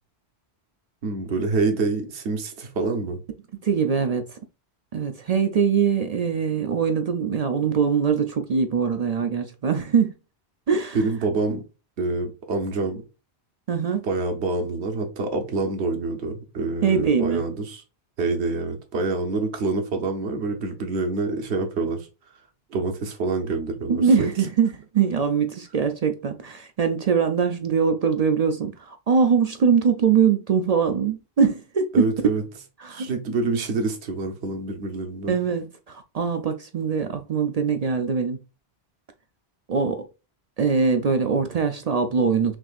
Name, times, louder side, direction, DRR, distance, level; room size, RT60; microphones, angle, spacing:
voice 1, 1.0-3.2 10.9-11.6 12.0-13.0 14.0-17.8 18.2-22.1 22.7-24.3 31.9-32.4 32.9-35.4, right 3 dB, 80° right, 1.2 m, -26 dB
voice 2, 3.6-4.4 4.9-10.1 10.7-11.0 13.7-14.1 16.8-17.4 23.9-32.1 32.8-33.1 35.3-38.4 39.7-40.1 40.6-42.6, right 6 dB, 55° right, 0.4 m, -22 dB
6.0 x 2.6 x 2.4 m
omnidirectional pair, 1.1 m